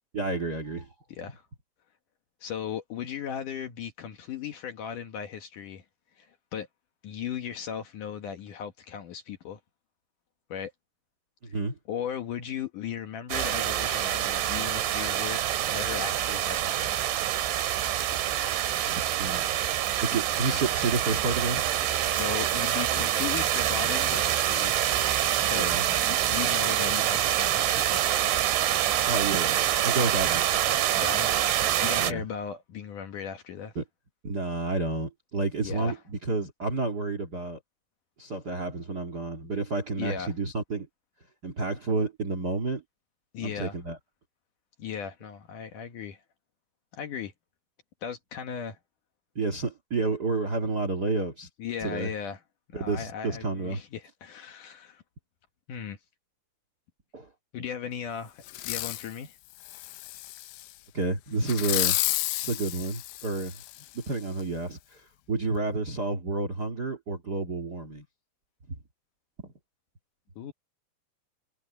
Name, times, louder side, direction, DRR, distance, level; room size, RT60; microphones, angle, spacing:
voice 1, 0.1-0.9 11.4-11.8 18.9-19.5 20.0-21.6 25.5-25.8 29.1-30.4 32.0-32.2 33.7-33.8 34.2-37.6 38.2-40.9 41.4-42.8 43.4-44.0 49.3-51.5 51.8-52.1 52.7-53.8 57.1-57.3 60.9-62.0 62.4-63.6 63.9-68.0 68.7-68.8, right 3 dB, 50° right, 1.1 m, -30 dB
voice 2, 1.1-1.4 2.4-5.9 6.2-6.7 7.0-9.6 10.5-10.7 11.5-11.6 11.9-15.4 15.7-17.0 22.1-24.7 25.4-28.1 30.9-31.3 31.8-33.7 35.6-36.0 40.0-40.3 43.3-43.8 44.8-46.2 46.9-47.3 48.0-48.8 51.6-52.4 52.7-55.0 55.7-56.0 57.5-59.4 70.4-70.5, left 8 dB, 70° left, 2.0 m, -37 dB
sound 1, 13.3-32.1, right 12 dB, 70° right, 4.1 m, -26 dB
Fireworks, 58.5-59.1 59.6-60.7 61.4-63.8 64.4-64.5, left 17 dB, 85° left, 3.6 m, -31 dB
omnidirectional pair, 5.8 m